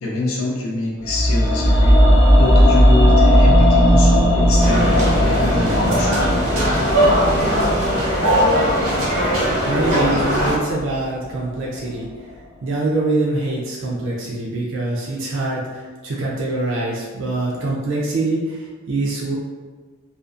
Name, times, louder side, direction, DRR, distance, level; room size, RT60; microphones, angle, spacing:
voice 1, 0.0-2.0 2.4-6.2, left 2 dB, 75° left, -3 dB, 0.6 m, -24 dB
sound 1, 1.0-11.2 11.4-11.5, equal, 25° left, 0.6 m, -16 dB
sound 2, 4.6-10.6, equal, 80° right, 0.8 m, -19 dB
voice 2, 9.7-12.1 12.6-19.4, right 2 dB, 60° right, -4 dB, 0.4 m, -24 dB
2.4 x 2.4 x 2.4 m, 1.3 s
head